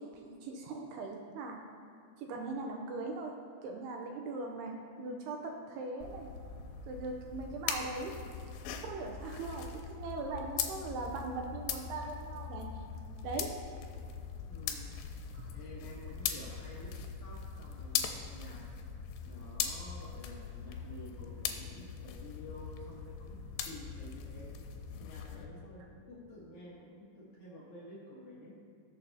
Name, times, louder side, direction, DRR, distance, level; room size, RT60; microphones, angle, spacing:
voice 1, 0.0-1.6 2.2-3.3 3.6-6.3 6.9-8.1 8.8-12.7 13.2-13.5 15.3-15.5 16.3-16.4, right 3 dB, 85° right, 2 dB, 2.5 m, -40 dB
sound 1, 6.0-25.5, left 7 dB, 90° left, 2.9 m, -41 dB
voice 2, 14.5-15.0 15.5-18.6 19.2-24.6 25.0-28.6, left 1 dB, 65° left, -6 dB, 2.1 m, -50 dB
18.5 x 6.8 x 2.8 m, 2.4 s
omnidirectional pair, 5.1 m